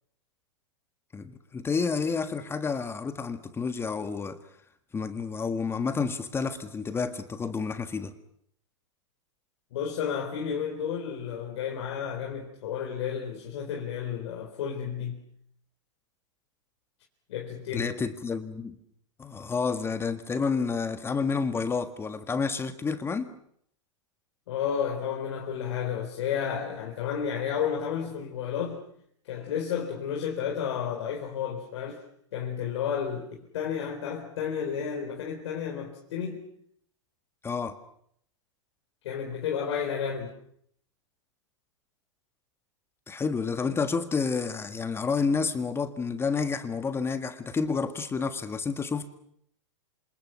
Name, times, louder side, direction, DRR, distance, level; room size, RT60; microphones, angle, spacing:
voice 1, 1.1-4.4 4.9-8.1 17.7-18.8 19.2-23.3 37.4-37.8 43.1-49.1, left 5 dB, 15° left, 1.6 m, -30 dB
voice 2, 9.7-15.2 17.3-17.9 24.5-28.8 29.3-32.0 32.3-36.4 39.0-40.3, left 8 dB, 60° left, 4.3 m, -32 dB
27.5 x 27.0 x 6.0 m
hypercardioid pair, 105°, 16 cm